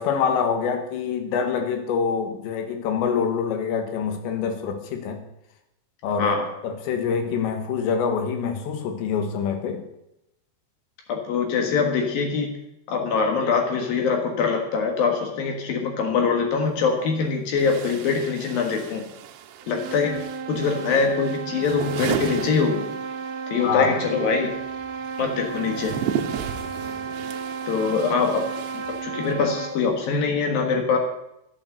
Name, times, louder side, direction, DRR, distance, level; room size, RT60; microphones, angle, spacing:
voice 1, 0.0-5.2 6.0-9.8 23.6-24.0, left 6 dB, 80° left, 6 dB, 3.7 m, -25 dB
voice 2, 11.1-12.5 12.9-19.0 19.7-20.2 20.5-22.8 23.5-24.5 25.2-25.9 27.7-28.4 28.7-31.0, left 5 dB, 60° left, 3 dB, 2.9 m, -23 dB
sound 1, 16.6-16.7 17.6-23.4 23.6-29.5, right 9 dB, 90° right, 3.3 m, -35 dB
sound 2, 19.6-29.9, right 6 dB, 70° right, 2.9 m, -33 dB
12.0 x 8.6 x 7.7 m, 0.83 s
omnidirectional pair, 5.1 m